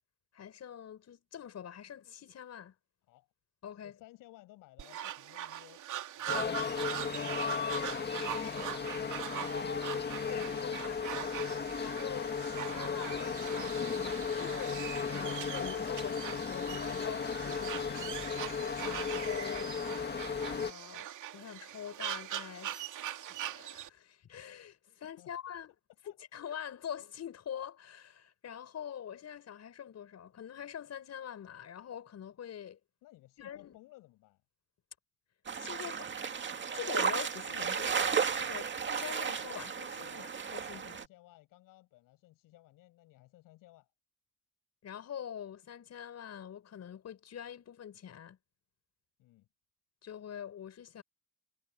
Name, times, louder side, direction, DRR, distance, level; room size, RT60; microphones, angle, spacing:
voice 1, 0.3-2.7 3.6-3.9 10.3-11.5 11.8-13.9 14.4-14.8 15.1-20.1 20.5-21.1 21.3-25.7 26.3-32.8 33.4-33.8 35.6-36.4 36.7-41.0 44.8-48.4 50.0-51.0, left 9 dB, 50° left, 6.8 m, -45 dB
voice 2, 3.8-5.8 25.0-25.3 26.0-26.4 33.0-34.4 40.0-40.3 40.6-43.9 49.2-49.5, left 17 dB, 80° left, 7.7 m, -59 dB
sound 1, 4.8-23.9, right 12 dB, 65° right, 2.8 m, -42 dB
sound 2, 6.3-20.7, left 6 dB, 30° left, 2.0 m, -35 dB
sound 3, 35.5-41.0, right 6 dB, 35° right, 2.2 m, -34 dB
cardioid pair, 95°, 33 cm